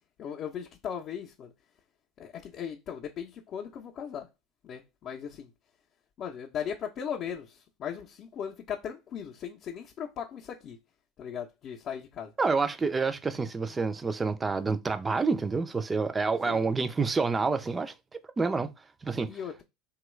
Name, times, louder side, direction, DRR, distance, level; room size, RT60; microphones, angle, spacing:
voice 1, 0.2-1.5 2.2-4.3 4.6-5.5 6.2-10.8 11.2-12.3 16.5-16.7 19.3-19.6, left 8 dB, 45° left, 0.5 m, -38 dB
voice 2, 12.4-18.7 19.0-19.3, right 4 dB, 20° right, 0.4 m, -28 dB
2.9 x 2.3 x 3.1 m
hypercardioid pair, 80°, 0 cm